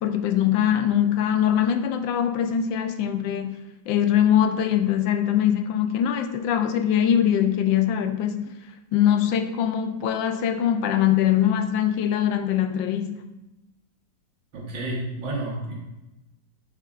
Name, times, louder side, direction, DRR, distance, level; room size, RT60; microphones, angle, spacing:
voice 1, 0.0-8.5 8.9-13.2, left 10 dB, 80° left, 7 dB, 1.3 m, -22 dB
voice 2, 14.5-15.7, right 1 dB, 85° right, -5 dB, 2.1 m, -30 dB
11.0 x 5.2 x 2.4 m, 1.0 s
omnidirectional pair, 2.0 m